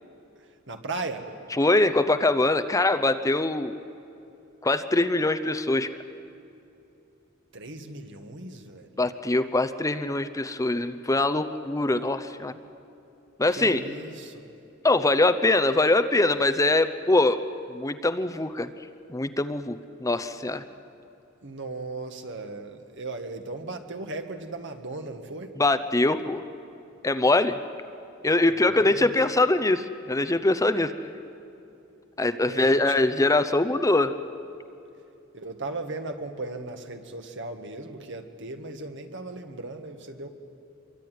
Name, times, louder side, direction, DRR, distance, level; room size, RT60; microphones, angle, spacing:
voice 1, 0.4-1.3 7.5-9.0 13.5-14.5 21.4-25.5 28.5-29.1 32.4-33.0 35.3-40.3, right 2 dB, 60° right, 6 dB, 2.0 m, -37 dB
voice 2, 1.6-3.8 4.6-5.9 9.0-12.5 13.4-13.8 14.8-17.4 17.7-18.7 19.1-20.6 25.6-26.4 27.0-27.6 28.2-30.9 32.2-34.1, left 2 dB, 15° left, 10 dB, 0.7 m, -23 dB
25.5 x 23.0 x 9.4 m, 2.8 s
head